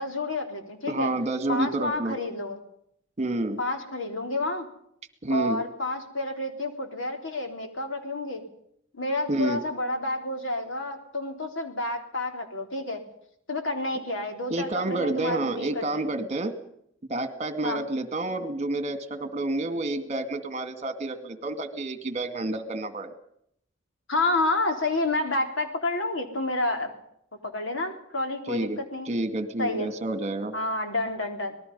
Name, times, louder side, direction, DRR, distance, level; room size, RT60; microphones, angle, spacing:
voice 1, 0.0-1.1 1.5-2.6 3.6-4.7 5.3-8.4 8.9-13.0 13.5-16.0 17.6-17.9 24.1-26.9 27.4-29.1 29.6-29.9 30.5-31.5, left 2 dB, 75° left, 4 dB, 3.7 m, -29 dB
voice 2, 0.9-2.2 3.2-3.6 5.2-5.6 9.3-9.6 14.5-16.5 17.1-23.1 28.5-28.8 29.1-30.5, right 2 dB, 35° right, 9 dB, 2.2 m, -29 dB
26.0 x 20.0 x 5.6 m, 0.71 s
head